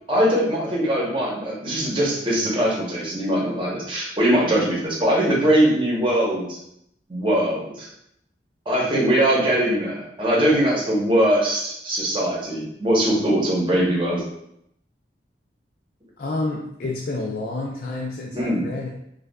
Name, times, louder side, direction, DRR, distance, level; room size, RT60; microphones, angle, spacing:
voice 1, 0.1-6.6 7.1-7.9 8.7-14.2 18.3-18.6, right 1 dB, 25° right, -4 dB, 0.8 m, -21 dB
voice 2, 16.2-18.9, left 2 dB, 55° left, -1 dB, 0.4 m, -29 dB
4.8 x 2.3 x 2.2 m, 0.76 s
head